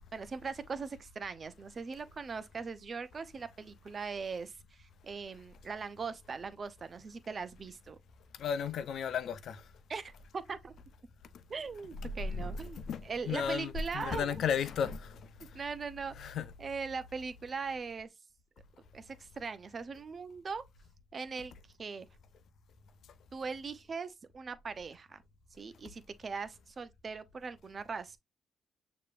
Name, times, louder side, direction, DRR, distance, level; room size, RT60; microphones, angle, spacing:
voice 1, 0.1-8.0 9.9-10.7 11.5-14.4 15.5-16.3 16.6-18.1 18.9-20.6 21.1-21.5 21.8-22.1 23.3-25.2 25.6-28.2, right 5 dB, 40° right, 0.7 m, -40 dB
voice 2, 8.3-9.7 12.0-15.6 16.2-16.5, left 6 dB, 65° left, 0.7 m, -35 dB
6.6 x 3.0 x 2.5 m
cardioid pair, 90°, 0 cm